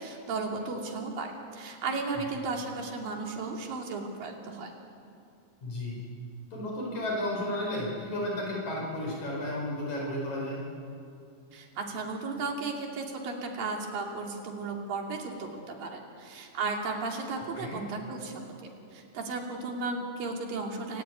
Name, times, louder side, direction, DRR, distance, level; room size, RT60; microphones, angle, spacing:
voice 1, 0.0-4.7 11.5-21.0, right 3 dB, 85° right, 1 dB, 4.4 m, -35 dB
voice 2, 5.6-6.1 6.5-10.6 17.6-17.8, left 1 dB, 60° left, -2 dB, 6.1 m, -33 dB
28.0 x 14.5 x 9.3 m, 2.6 s
omnidirectional pair, 3.9 m